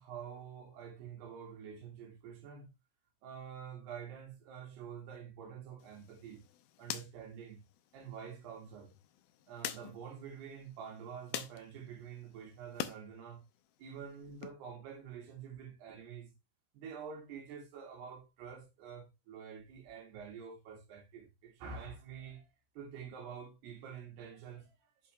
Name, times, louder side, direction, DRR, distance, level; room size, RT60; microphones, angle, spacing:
voice 1, 0.0-2.7 3.2-6.4 6.8-7.6 7.9-9.0 9.5-13.4 13.8-16.3 16.7-25.1, right 7 dB, 75° right, 4.0 m, -48 dB
sound 1, 5.8-13.0 13.4-14.5, left 12 dB, 75° left, 2.4 m, -47 dB
8.5 x 6.6 x 3.1 m
omnidirectional pair, 4.9 m